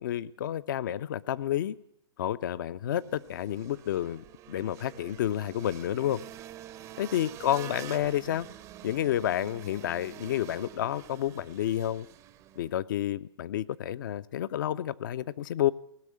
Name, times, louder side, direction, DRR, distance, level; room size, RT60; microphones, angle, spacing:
voice 1, 0.0-1.8 2.2-6.2 7.0-8.5 8.8-12.1 12.6-15.7, left 11 dB, 45° left, 18 dB, 0.4 m, -30 dB
sound 1, 2.9-12.7, right 12 dB, 20° right, 0.5 m, -47 dB
18.0 x 6.5 x 8.5 m, 0.82 s
figure-of-eight pair, 120°, 15 cm